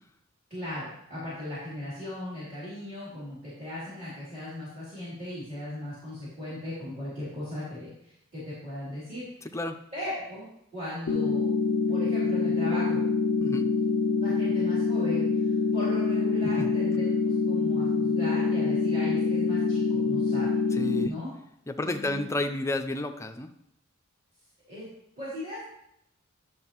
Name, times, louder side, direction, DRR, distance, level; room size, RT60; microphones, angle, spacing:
voice 1, 0.5-9.3 9.9-11.5 11.9-13.0 14.2-20.5 21.0-21.3 21.8-22.3 24.7-24.9 25.2-25.6, left 1 dB, 30° right, -11 dB, 3.1 m, -38 dB
sound 1, 11.1-21.1, left 4 dB, 80° left, 0.4 m, -25 dB
voice 2, 13.4-13.7 16.4-16.7 20.7-21.2 21.7-23.5, left 2 dB, 15° left, 6 dB, 0.4 m, -31 dB
10.5 x 6.4 x 3.0 m, 0.77 s
head